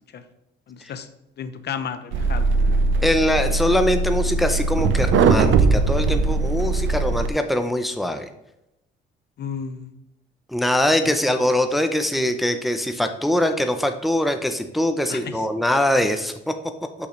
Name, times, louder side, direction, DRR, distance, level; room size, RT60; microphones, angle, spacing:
voice 1, 0.7-1.1 1.4-2.5 9.4-9.9 11.0-11.2 15.1-15.5, left 7 dB, 55° left, 10 dB, 0.7 m, -32 dB
sound 1, 2.1-7.3, right 4 dB, 80° right, 0.6 m, -20 dB
voice 2, 3.0-8.3 10.5-16.5, left 1 dB, ahead, 7 dB, 0.6 m, -22 dB
6.4 x 5.6 x 3.2 m, 0.89 s
cardioid pair, 90°, 20 cm